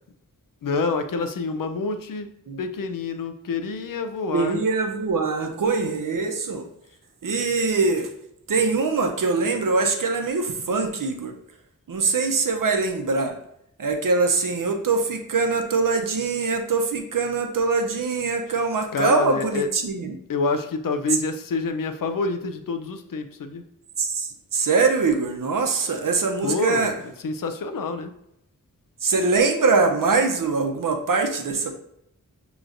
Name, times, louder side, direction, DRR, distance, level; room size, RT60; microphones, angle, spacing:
voice 1, 0.6-2.3 2.6-4.6 18.9-19.7 20.3-23.7 26.4-26.9 27.2-28.1, left 3 dB, 85° left, 8 dB, 0.5 m, -27 dB
voice 2, 4.3-6.7 7.2-8.1 8.5-11.3 11.9-13.3 13.8-20.2 24.0-26.9 29.0-31.7, right 4 dB, 80° right, 4 dB, 0.7 m, -23 dB
6.3 x 3.0 x 2.5 m, 0.77 s
wide cardioid pair, 70°, 32 cm